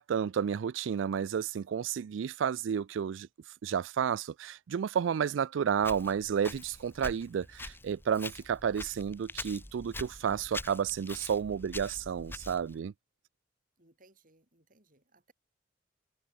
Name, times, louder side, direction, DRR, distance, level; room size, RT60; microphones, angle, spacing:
voice 1, 0.0-3.3 3.6-12.9, right 7 dB, 90° right, 0.4 m, -31 dB
Walk footsteps, 5.8-12.8, left 2 dB, 10° left, 1.7 m, -44 dB
voice 2, 13.8-15.3, right 2 dB, 45° right, 7.5 m, -65 dB
head